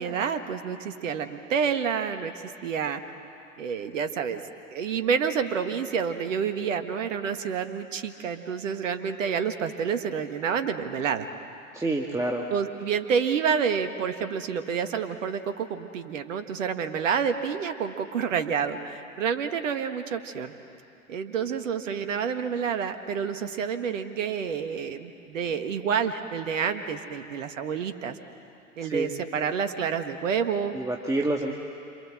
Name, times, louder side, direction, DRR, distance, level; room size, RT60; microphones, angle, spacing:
voice 1, 0.0-3.0 3.6-4.4 4.7-11.3 12.5-20.5 21.1-28.2 28.8-30.7, right 7 dB, 65° right, 8 dB, 1.8 m, -28 dB
voice 2, 11.7-12.4 28.9-29.1 30.7-31.5, right 2 dB, 10° right, -1 dB, 1.7 m, -27 dB
28.0 x 27.0 x 7.8 m, 2.7 s
figure-of-eight pair, 85°, 41 cm